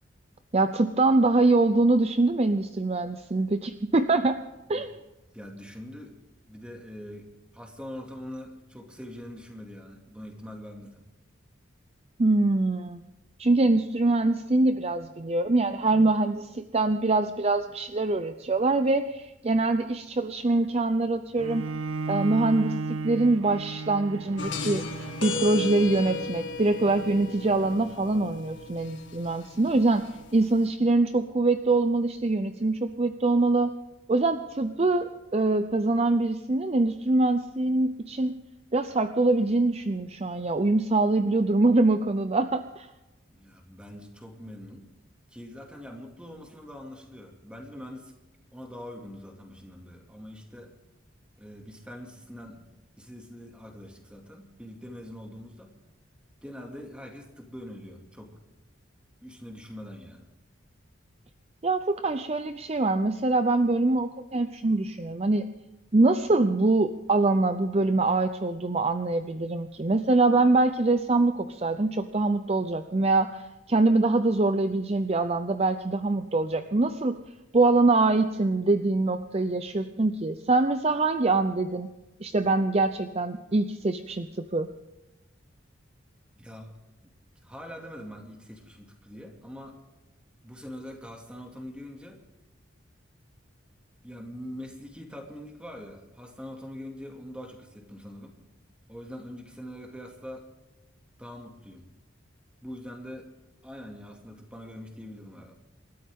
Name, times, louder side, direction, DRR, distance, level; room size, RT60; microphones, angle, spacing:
voice 1, 0.5-4.4 4.7-4.9 12.2-13.0 13.4-21.7 22.1-24.8 25.2-30.0 30.3-33.7 34.1-38.3 38.7-42.9 61.6-65.4 65.9-77.2 77.5-81.9 82.2-84.7, right 2 dB, 30° right, 9 dB, 0.6 m, -24 dB
voice 2, 5.3-6.2 6.5-11.0 43.3-44.9 45.3-48.1 48.5-50.7 51.4-52.7 53.0-55.8 56.4-58.4 59.2-60.3 86.4-86.8 87.4-89.8 90.4-92.2 94.0-98.4 98.9-100.5 101.2-101.9 102.6-103.3 103.6-105.5, equal, 5° right, 2 dB, 2.4 m, -43 dB
Bowed string instrument, 21.4-26.6, right 3 dB, 90° right, 0.6 m, -35 dB
sound 1, 24.4-30.7, left 3 dB, 65° left, 1.9 m, -36 dB
28.0 x 13.0 x 3.7 m, 1.0 s
head